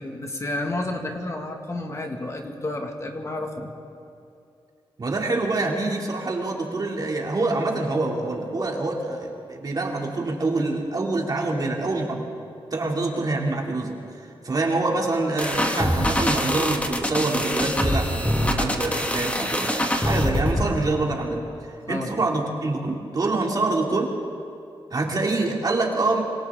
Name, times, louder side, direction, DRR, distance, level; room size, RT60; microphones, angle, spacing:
voice 1, 0.0-3.7 21.9-22.1, left 2 dB, 35° left, 2 dB, 2.1 m, -31 dB
voice 2, 5.0-12.3 12.7-21.5 21.9-24.2 24.9-26.2, right 2 dB, 45° right, -1 dB, 2.9 m, -26 dB
sound 1, 15.4-20.7, left 1 dB, 15° left, 1.8 m, -24 dB
26.5 x 25.5 x 3.8 m, 2.6 s
wide cardioid pair, 105°, 9 cm